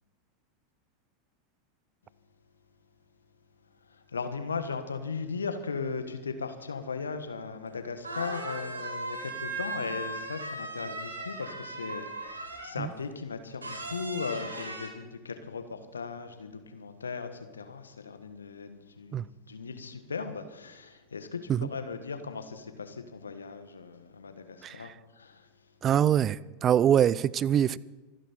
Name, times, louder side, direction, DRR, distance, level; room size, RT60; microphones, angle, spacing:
voice 1, 3.8-25.5, left 5 dB, 80° left, 9 dB, 1.5 m, -37 dB
sound 1, 7.7-7.8 8.0-12.9 13.6-14.9, right 2 dB, 85° right, 2.3 m, -38 dB
voice 2, 24.6-24.9 25.8-27.8, right 10 dB, 30° right, 21 dB, 0.5 m, -24 dB
25.5 x 10.0 x 4.4 m, 1.2 s
figure-of-eight pair, 90°, 0 cm